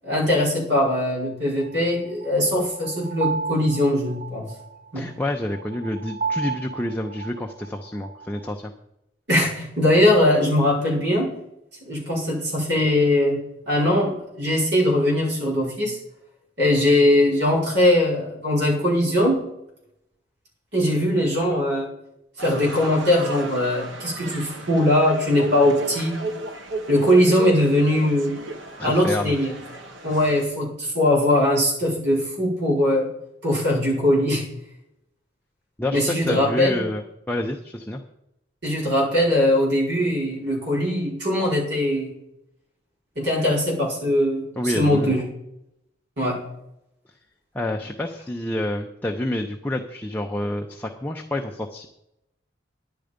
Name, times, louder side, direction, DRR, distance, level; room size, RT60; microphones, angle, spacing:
voice 1, 0.0-4.5 4.9-5.1 9.3-11.3 11.8-13.4 13.7-16.0 16.6-19.4 20.7-21.9 22.4-26.2 26.9-28.4 28.8-29.5 30.0-33.1 33.4-34.4 35.9-36.8 38.6-42.1 43.2-45.2 46.2-46.4, left 1 dB, 60° right, -4 dB, 4.7 m, -21 dB
sound 1, 1.6-8.5, right 5 dB, 40° right, 1.0 m, -33 dB
voice 2, 4.9-8.7 28.8-29.3 35.8-38.0 44.6-45.2 47.5-51.9, left 1 dB, 10° left, 1 dB, 0.6 m, -28 dB
sound 2, 22.4-30.4, right 2 dB, 80° right, 1.1 m, -34 dB
10.5 x 9.7 x 5.1 m, 0.84 s
head